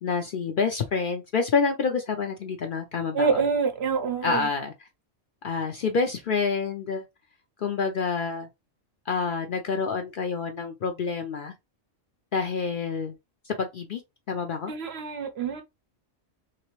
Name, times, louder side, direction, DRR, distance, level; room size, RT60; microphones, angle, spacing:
voice 1, 0.0-3.3 4.2-4.7 5.4-7.0 7.6-8.5 9.1-11.5 12.3-13.2 13.5-14.0 14.3-14.7, left 5 dB, 60° left, 0.6 m, -27 dB
voice 2, 3.1-4.5 14.7-15.6, right 5 dB, 65° right, 0.9 m, -26 dB
3.3 x 2.9 x 3.0 m
omnidirectional pair, 1.3 m